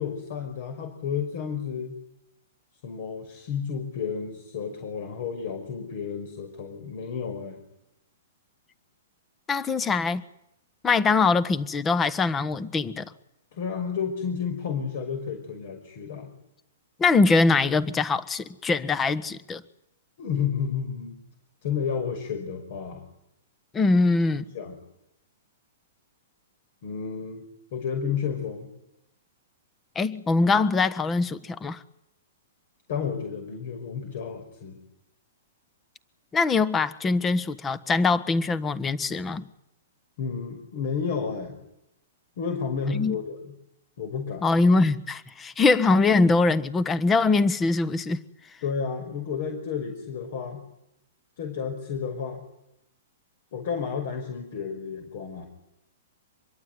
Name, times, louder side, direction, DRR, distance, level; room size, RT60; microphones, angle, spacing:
voice 1, 0.0-2.0 2.8-7.6 13.5-16.3 20.2-21.2 21.6-23.1 24.5-24.8 26.8-28.7 32.9-34.8 40.2-41.6 42.4-43.4 44.0-44.5 48.6-50.6 51.4-52.4 53.5-55.5, left 6 dB, 55° left, 5.6 m, -31 dB
voice 2, 9.5-10.2 10.8-13.1 17.0-19.6 23.7-24.4 29.9-31.8 36.3-39.5 42.9-43.2 44.4-48.2, left 3 dB, 15° left, 1.3 m, -22 dB
25.0 x 22.5 x 9.6 m
hypercardioid pair, 145°, 0 cm